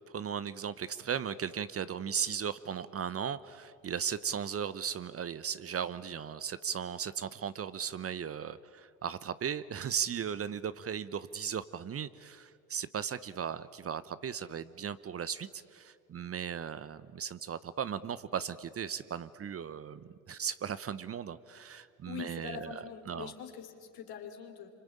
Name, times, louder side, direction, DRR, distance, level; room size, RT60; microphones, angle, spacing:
voice 1, 0.1-22.7 23.1-23.3, right 8 dB, 35° right, 16 dB, 0.9 m, -37 dB
voice 2, 22.1-24.7, left 8 dB, 60° left, 4 dB, 3.5 m, -43 dB
27.0 x 25.0 x 8.7 m, 2.5 s
hypercardioid pair, 65°, 41 cm